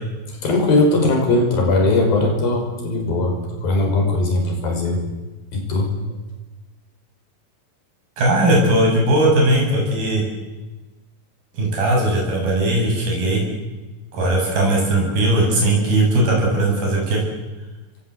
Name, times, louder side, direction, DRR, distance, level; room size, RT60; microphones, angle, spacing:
voice 1, 0.3-5.0 5.5-6.1 14.2-14.3, left 2 dB, 75° left, 3 dB, 7.3 m, -19 dB
voice 2, 8.2-10.2 11.5-13.4 14.1-17.2, right 1 dB, 80° right, -1 dB, 9.6 m, -18 dB
29.5 x 22.5 x 8.3 m, 1.1 s
omnidirectional pair, 4.2 m